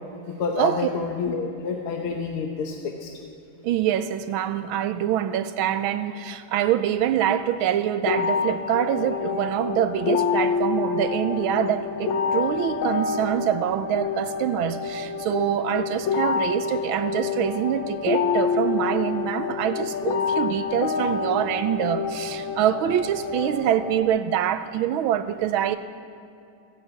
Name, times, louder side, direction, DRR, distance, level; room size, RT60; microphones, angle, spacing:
voice 1, 0.4-3.1, left 5 dB, 90° left, 2 dB, 1.9 m, -28 dB
voice 2, 3.6-25.8, right 10 dB, 80° right, 12 dB, 1.4 m, -25 dB
sound 1, 8.0-24.0, left 5 dB, 70° left, 1.9 m, -27 dB
15.5 x 10.5 x 8.1 m, 2.6 s
omnidirectional pair, 2.3 m